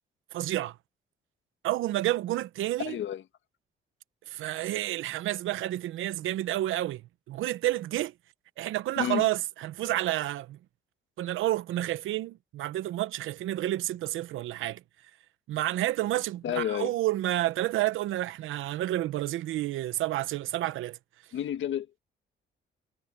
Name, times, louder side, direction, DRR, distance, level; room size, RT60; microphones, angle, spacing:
voice 1, 0.3-0.8 1.6-3.0 4.3-7.0 7.3-8.1 8.6-10.6 11.2-14.8 15.5-21.0, right 15 dB, 85° right, 0.9 m, -30 dB
voice 2, 2.8-3.2 9.0-9.2 16.4-16.9 21.3-22.0, left 10 dB, 70° left, 1.7 m, -30 dB
cardioid pair, 90°, 20 cm